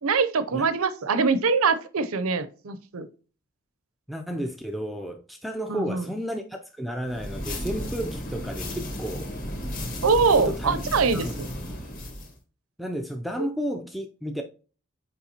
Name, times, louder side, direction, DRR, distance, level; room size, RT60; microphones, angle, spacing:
voice 1, 0.0-3.1 5.7-6.0 10.0-11.5 13.4-13.5, right 4 dB, 85° right, 0.7 m, -23 dB
voice 2, 4.1-9.3 10.4-10.7 11.1-11.3 12.8-14.4, equal, ahead, 0.4 m, -32 dB
sound 1, 7.1-12.3, equal, 40° left, 1.6 m, -34 dB
6.9 x 4.8 x 2.9 m
head